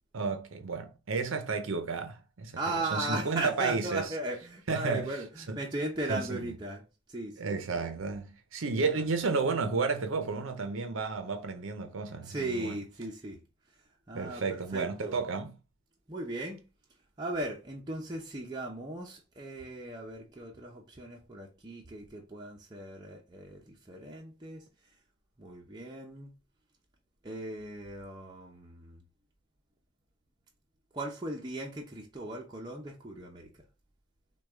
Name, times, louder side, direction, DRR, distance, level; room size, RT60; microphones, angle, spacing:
voice 1, 0.1-2.5 2.9-4.1 4.7-5.1 5.5-5.6 6.1-6.5 7.4-12.7 14.1-15.5, right 4 dB, 70° right, 0.6 m, -32 dB
voice 2, 2.6-6.8 7.1-7.9 8.9-9.0 12.2-13.4 14.1-15.2 16.1-16.6 17.2-24.6 25.4-26.3 27.2-29.0 30.9-33.5, right 2 dB, 20° right, 0.6 m, -37 dB
6.3 x 2.3 x 3.5 m
head